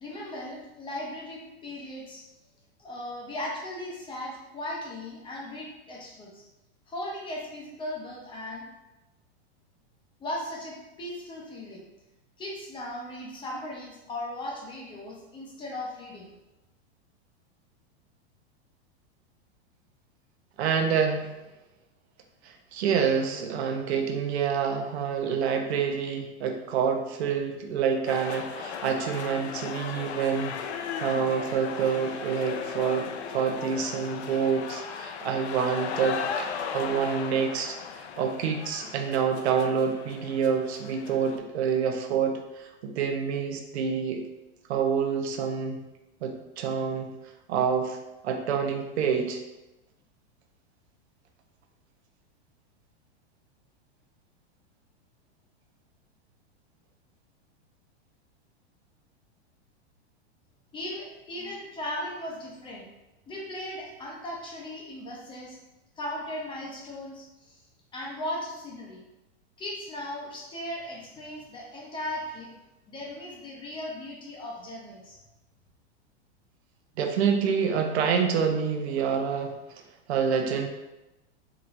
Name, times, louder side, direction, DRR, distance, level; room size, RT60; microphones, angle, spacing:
voice 1, 0.0-2.2 2.8-6.4 6.9-8.6 10.2-11.8 12.4-16.3 60.7-62.8 63.3-65.6 66.0-67.6 67.9-69.0 69.6-72.5 72.9-75.2, left 1 dB, 15° left, -3 dB, 0.7 m, -37 dB
voice 2, 20.6-21.3 22.4-30.6 31.0-37.8 38.2-44.2 44.7-45.8 46.2-47.1 47.5-48.0 48.2-49.4 77.0-79.5 80.1-80.7, right 6 dB, 75° right, 4 dB, 0.7 m, -27 dB
sound 1, 28.1-41.4, left 7 dB, 80° left, 0.5 m, -36 dB
4.9 x 3.0 x 2.5 m, 0.98 s
supercardioid pair, 145°, 33 cm